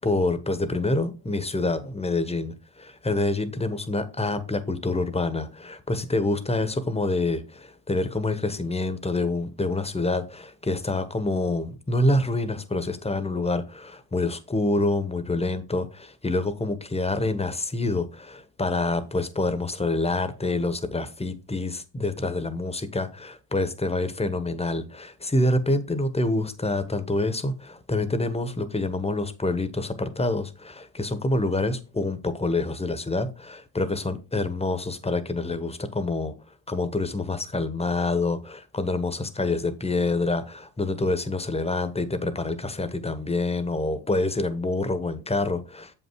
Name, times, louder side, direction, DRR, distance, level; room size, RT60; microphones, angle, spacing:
voice 1, 0.0-36.3 36.7-45.9, left 2 dB, 10° left, 1.2 m, -27 dB
7.2 x 5.8 x 4.6 m
supercardioid pair, 75°, 48 cm